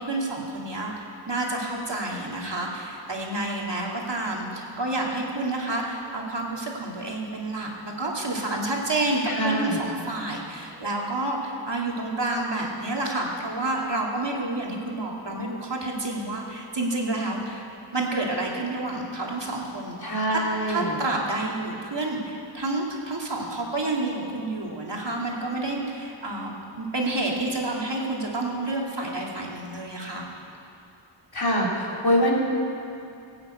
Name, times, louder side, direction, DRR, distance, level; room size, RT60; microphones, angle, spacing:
voice 1, 0.0-17.7 17.9-20.4 20.7-30.3, right 2 dB, 60° right, -2 dB, 2.5 m, -29 dB
voice 2, 9.2-9.8 20.0-20.9 31.3-32.3, equal, 50° left, -3 dB, 3.1 m, -24 dB
17.5 x 8.9 x 8.3 m, 2.7 s
wide cardioid pair, 60°, 48 cm